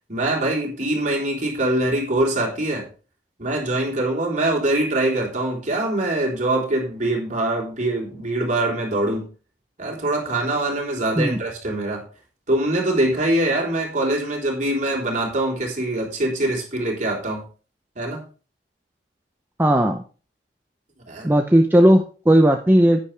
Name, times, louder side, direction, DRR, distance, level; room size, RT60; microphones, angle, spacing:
voice 1, 0.1-2.9 3.4-9.3 9.8-12.0 12.5-17.4 18.0-18.2 21.1-21.3, right 1 dB, 45° right, -1 dB, 3.9 m, -23 dB
voice 2, 19.6-20.0 21.2-23.0, right 1 dB, 10° right, 4 dB, 0.7 m, -16 dB
10.5 x 9.7 x 3.3 m, 0.37 s
head